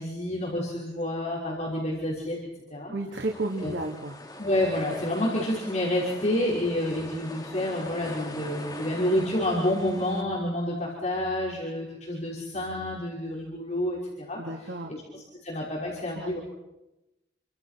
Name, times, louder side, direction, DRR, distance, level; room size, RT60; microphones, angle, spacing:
voice 1, 0.0-2.4 2.7-2.9 3.6-3.8 4.4-16.4, left 1 dB, 40° left, -4 dB, 5.8 m, -29 dB
voice 2, 2.9-4.2 14.4-15.0 16.1-16.3, right 2 dB, 80° right, 1 dB, 2.5 m, -32 dB
sound 1, 3.2-10.2, left 1 dB, 25° left, 3.9 m, -42 dB
29.5 x 26.0 x 6.0 m, 0.95 s
head